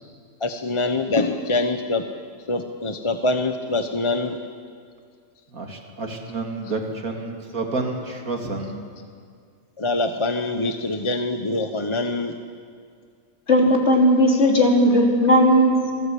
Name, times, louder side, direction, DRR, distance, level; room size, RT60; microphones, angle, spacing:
voice 1, 0.4-2.1 2.5-4.4 9.8-12.4, left 2 dB, 25° left, 6 dB, 0.9 m, -24 dB
voice 2, 5.5-8.9, right 3 dB, 90° right, 2 dB, 3.1 m, -29 dB
voice 3, 13.5-15.9, equal, 50° left, 0 dB, 3.8 m, -16 dB
26.5 x 18.5 x 8.5 m, 2.1 s
omnidirectional pair, 1.4 m